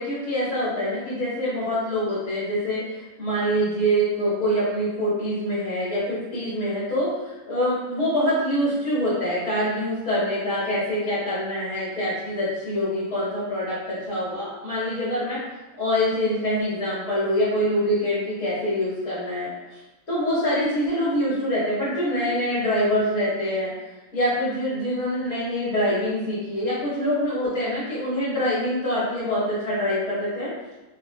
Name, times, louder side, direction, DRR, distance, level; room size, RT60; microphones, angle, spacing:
voice 1, 0.0-15.4 15.8-19.5 20.1-23.7 24.1-30.5, equal, 55° left, -10 dB, 1.3 m, -25 dB
3.5 x 2.4 x 2.2 m, 1.1 s
omnidirectional pair, 1.7 m